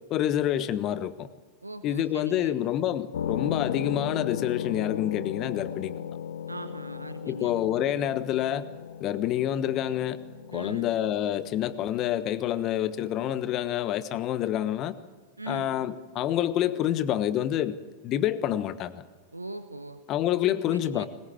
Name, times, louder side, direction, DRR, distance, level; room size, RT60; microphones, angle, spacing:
voice 1, 0.1-1.3 1.8-5.9 7.2-8.7 9.0-10.2 10.5-14.9 15.5-17.7 18.0-19.0 20.1-21.1, left 11 dB, 35° left, 14 dB, 1.2 m, -27 dB
voice 2, 1.6-2.6 6.5-7.6 10.5-10.9 15.4-15.8 19.3-20.0 20.5-21.1, right 2 dB, 85° right, 11 dB, 1.0 m, -40 dB
sound 1, 3.1-13.3, left 8 dB, 65° left, 0.6 m, -37 dB
21.5 x 20.5 x 7.9 m, 1.3 s
figure-of-eight pair, 90°, 0 cm